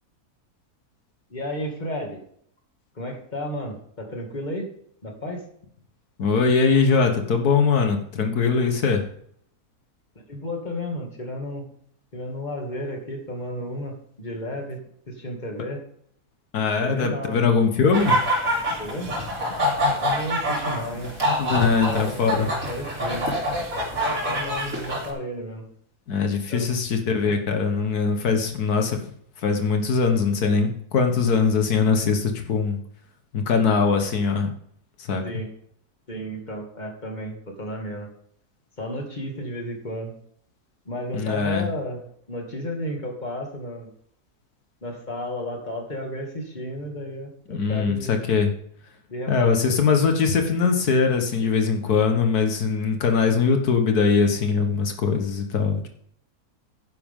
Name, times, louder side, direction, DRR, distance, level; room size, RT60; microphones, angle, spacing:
voice 1, 1.3-2.2 2.9-4.7 5.0-5.4 10.3-11.6 12.1-14.8 15.1-15.8 16.8-17.5 18.8-21.1 21.8-23.3 23.9-25.6 26.5-26.6 35.2-35.5 36.1-38.1 38.8-40.1 40.9-43.9 44.8-48.2 49.1-49.8, equal, 30° left, 1 dB, 2.6 m, -33 dB
voice 2, 6.2-9.0 16.5-18.2 21.4-22.5 26.1-29.0 29.4-32.8 33.3-34.5 35.0-35.2 41.1-41.6 47.5-48.5 49.3-55.9, left 5 dB, 90° left, 5 dB, 1.8 m, -21 dB
sound 1, 17.9-25.1, equal, 60° right, 3.6 m, -26 dB
11.5 x 10.0 x 3.7 m, 0.65 s
omnidirectional pair, 1.6 m